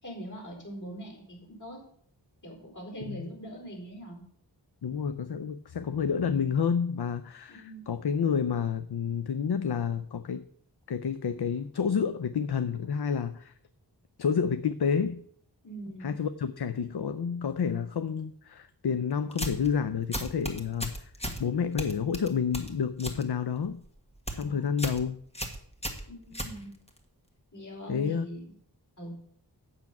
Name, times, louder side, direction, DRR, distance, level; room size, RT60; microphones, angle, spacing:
voice 1, 0.0-1.8 2.4-4.2 7.5-7.9 15.6-16.1 24.4-24.8 26.1-26.7 27.5-28.5 29.0-29.1, right 1 dB, 45° left, 0 dB, 4.3 m, -42 dB
voice 2, 4.8-10.4 10.9-13.5 14.2-15.2 16.0-21.1 21.4-23.8 24.3-25.2 27.9-28.3, left 6 dB, 65° left, 12 dB, 0.6 m, -29 dB
sound 1, 19.3-19.7 20.1-21.4 21.8-23.2 23.6-23.9 24.1-24.4 24.8-25.0 25.3-27.0, equal, 15° left, 1.7 m, -35 dB
8.4 x 7.2 x 5.9 m, 0.62 s
wide cardioid pair, 45°, 42 cm